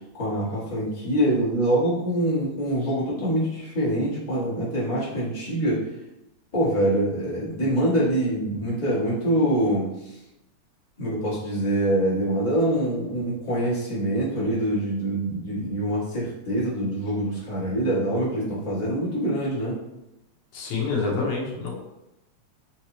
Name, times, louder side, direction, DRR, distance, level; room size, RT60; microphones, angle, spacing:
voice 1, 0.1-5.8 6.5-10.1 11.0-19.8, right 1 dB, 30° left, -9 dB, 0.6 m, -25 dB
voice 2, 20.5-21.7, left 4 dB, 65° left, -2 dB, 1.5 m, -27 dB
5.1 x 2.8 x 2.9 m, 0.91 s
omnidirectional pair, 3.3 m